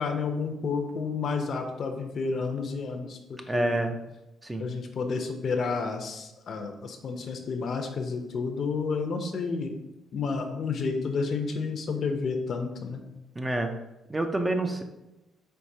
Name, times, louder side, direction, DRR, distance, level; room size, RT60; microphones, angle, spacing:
voice 1, 0.0-3.9 4.6-9.7 10.1-13.0, left 4 dB, 55° left, 5 dB, 0.5 m, -31 dB
voice 2, 3.5-3.9 4.4-4.7 13.4-13.7 14.1-14.8, right 2 dB, 15° right, 5 dB, 0.4 m, -27 dB
4.6 x 3.2 x 2.7 m, 0.96 s
cardioid pair, 90°, 0 cm